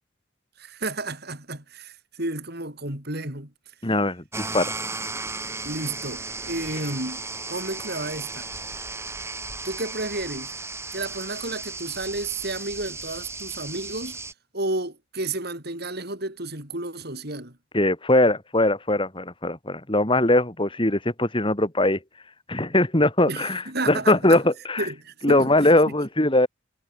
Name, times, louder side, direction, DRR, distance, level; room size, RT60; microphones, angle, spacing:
voice 1, 0.6-3.5 5.6-7.2 7.5-8.5 9.6-10.5 10.9-14.2 14.5-17.6 23.3-24.4 24.8-25.5 25.9-26.0, right 2 dB, 55° right, 6.7 m, -31 dB
voice 2, 3.8-4.7 17.7-22.0 22.5-24.9 25.2-26.5, left 1 dB, 25° left, 3.4 m, -21 dB
sound 1, 4.3-14.3, right 3 dB, 15° right, 4.8 m, -35 dB
head